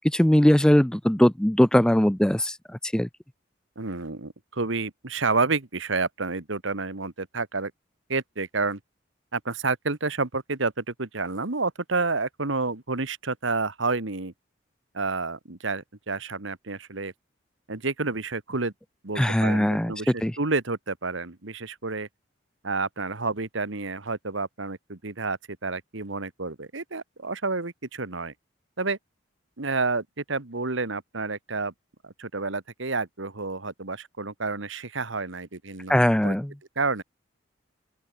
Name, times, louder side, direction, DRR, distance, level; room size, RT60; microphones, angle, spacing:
voice 1, 0.0-2.6 2.8-3.1 19.2-19.9 20.2-20.4 35.9-36.5, equal, 5° left, 0.4 m, -20 dB
voice 2, 3.7-7.7 8.1-8.8 9.3-14.3 14.9-17.1 17.7-18.7 19.0-22.1 22.6-28.3 28.8-29.0 29.6-31.7 32.0-36.3 36.7-37.0, right 3 dB, 75° right, 1.7 m, -29 dB
open air
head